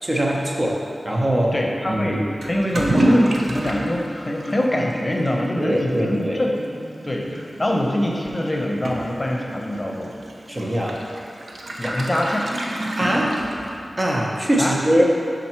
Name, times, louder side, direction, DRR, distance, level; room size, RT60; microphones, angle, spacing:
voice 1, 0.0-1.5 1.9-2.2 5.6-6.4 10.5-11.0 13.0-13.3 14.0-15.0, right 1 dB, 40° right, -2 dB, 0.9 m, -22 dB
voice 2, 1.5-6.5 7.0-10.1 11.8-12.5 14.6-14.8, left 1 dB, 30° left, 0 dB, 0.7 m, -24 dB
Toilet flush / Liquid, 2.4-14.0, right 1 dB, 80° right, 0.5 m, -28 dB
5.6 x 3.9 x 4.4 m, 2.4 s
cardioid pair, 45°, 0 cm